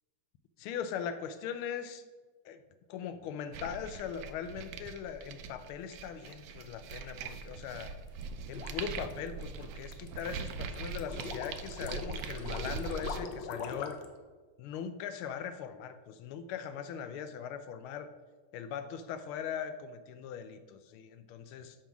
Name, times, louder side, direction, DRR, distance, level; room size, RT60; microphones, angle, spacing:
voice 1, 0.6-2.0 2.4-2.6 2.9-7.9 8.5-14.0 14.6-18.1 18.5-21.8, left 8 dB, 85° left, 9 dB, 1.4 m, -40 dB
sound 1, 3.5-13.2, right 5 dB, 75° right, 1.4 m, -42 dB
sound 2, 8.1-14.1, left 5 dB, 65° left, 1.4 m, -42 dB
7.1 x 5.7 x 5.9 m, 1.3 s
omnidirectional pair, 2.3 m